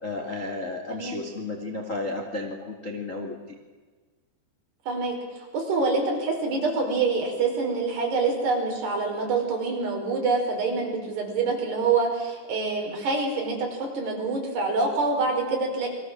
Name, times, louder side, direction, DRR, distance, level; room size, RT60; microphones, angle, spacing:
voice 1, 0.0-3.4, left 2 dB, 25° left, 2 dB, 1.7 m, -33 dB
voice 2, 0.9-1.2 4.9-15.9, right 4 dB, 60° right, 1 dB, 7.3 m, -26 dB
29.5 x 23.5 x 7.7 m, 1.4 s
omnidirectional pair, 5.5 m